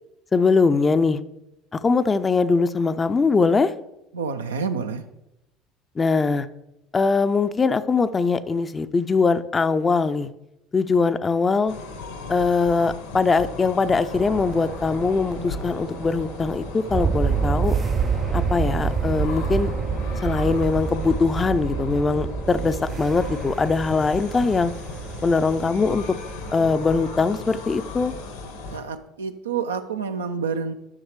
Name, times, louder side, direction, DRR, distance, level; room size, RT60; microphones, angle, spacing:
voice 1, 0.3-1.2 1.8-3.7 6.0-6.5 6.9-10.3 10.7-11.7 12.3-17.7 18.3-19.7 20.2-24.7 25.2-26.0 26.5-28.1, left 4 dB, 25° left, 13 dB, 0.5 m, -21 dB
voice 2, 4.1-5.0 28.7-30.7, right 5 dB, 80° right, 7 dB, 0.5 m, -28 dB
sound 1, 11.7-28.8, left 3 dB, 75° left, 1.2 m, -36 dB
sound 2, 14.1-28.1, right 6 dB, 30° right, 0.3 m, -28 dB
11.0 x 6.4 x 3.2 m, 0.90 s
figure-of-eight pair, 65°, 0 cm